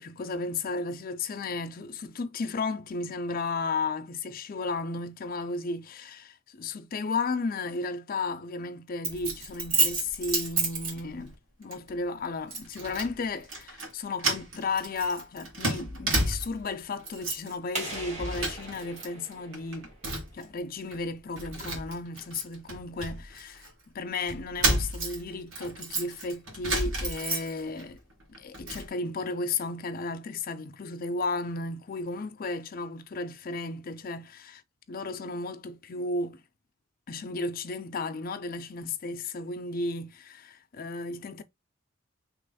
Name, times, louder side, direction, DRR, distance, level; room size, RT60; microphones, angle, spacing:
voice 1, 0.0-19.9 20.3-23.7 23.9-28.0 28.4-34.6 34.9-36.4 37.1-41.4, left 3 dB, 45° left, 0.5 m, -34 dB
Keys jangling, 9.0-11.3 11.7-11.9 12.5-13.1 13.4-13.9 14.2-16.7 17.0-17.5 17.9-19.1 19.3-20.4 20.9-21.0 21.4-23.7 24.3-27.8 28.2-28.9, right 2 dB, 85° right, 1.7 m, -31 dB
sound 1, 17.7-20.4, right 2 dB, 35° right, 2.0 m, -40 dB
3.1 x 2.9 x 4.0 m
head